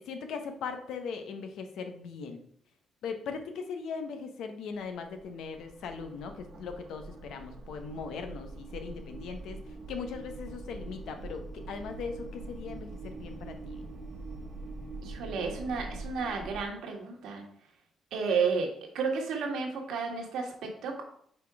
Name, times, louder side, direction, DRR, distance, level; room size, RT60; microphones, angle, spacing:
voice 1, 0.0-2.4 3.0-9.6 9.9-13.8, left 5 dB, 80° left, 6 dB, 0.9 m, -39 dB
sound 1, 4.7-16.6, right 3 dB, 50° right, 1.1 m, -44 dB
voice 2, 15.0-17.4 18.1-21.0, right 5 dB, 80° right, 2 dB, 1.5 m, -32 dB
5.3 x 4.3 x 4.8 m, 0.66 s
cardioid pair, 90°, 0 cm